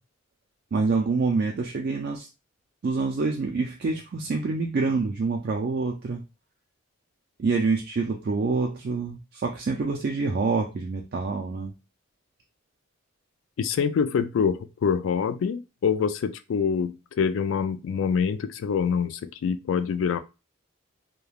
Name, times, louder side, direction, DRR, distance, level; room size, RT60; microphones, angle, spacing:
voice 1, 0.7-2.3 2.8-6.2 7.4-11.7, right 4 dB, 50° right, 0.4 m, -26 dB
voice 2, 13.6-20.2, left 6 dB, 70° left, 0.3 m, -25 dB
3.2 x 2.2 x 2.3 m
head